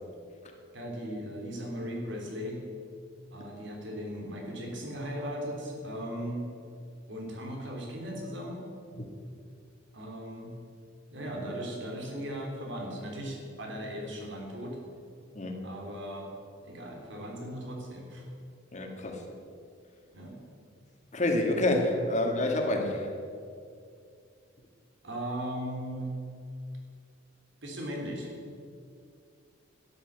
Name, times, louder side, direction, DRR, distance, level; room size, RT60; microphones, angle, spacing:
voice 1, 0.7-2.6 3.3-6.4 7.1-8.6 9.9-10.5 11.1-14.8 15.6-16.3 16.6-18.3 20.1-20.4 25.0-26.2 27.6-28.3, equal, 60° right, 0 dB, 3.4 m, -37 dB
voice 2, 18.7-19.2 21.1-23.1, left 1 dB, 35° left, 2 dB, 2.0 m, -28 dB
12.5 x 10.5 x 8.1 m, 2.4 s
head